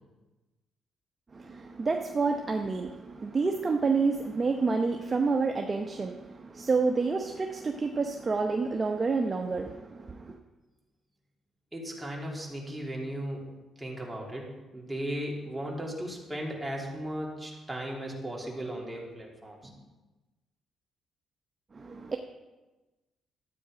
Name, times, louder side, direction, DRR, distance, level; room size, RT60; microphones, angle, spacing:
voice 1, 1.3-10.4 21.7-22.2, right 4 dB, 30° right, 4 dB, 0.8 m, -29 dB
voice 2, 11.7-13.4 13.8-19.6, equal, 15° right, -3 dB, 3.3 m, -36 dB
12.5 x 8.7 x 5.0 m, 1.1 s
cardioid pair, 90°, 0 cm